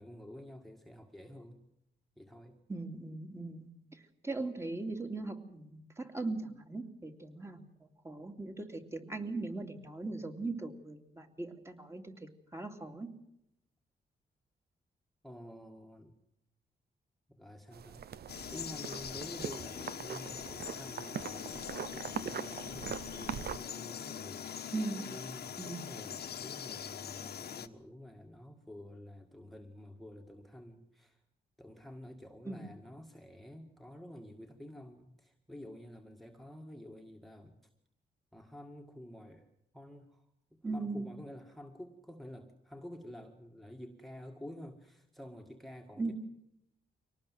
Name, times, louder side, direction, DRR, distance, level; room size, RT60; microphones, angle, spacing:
voice 1, 0.0-1.6 2.2-2.6 15.2-16.1 17.3-18.1 18.5-24.6 25.1-31.2 31.6-37.6 38.3-39.5 39.7-46.1, left 1 dB, ahead, 4 dB, 2.0 m, -49 dB
voice 2, 2.7-3.7 4.2-7.7 8.0-13.1 24.7-25.1 25.6-25.9 32.5-32.7 40.6-41.1 46.0-46.1, right 3 dB, 15° right, 5 dB, 2.7 m, -39 dB
sound 1, 17.7-23.6, right 8 dB, 65° right, 0.8 m, -42 dB
Frog, 18.3-27.7, left 8 dB, 65° left, 1.3 m, -43 dB
24.5 x 19.0 x 7.7 m, 0.79 s
cardioid pair, 100°, 18 cm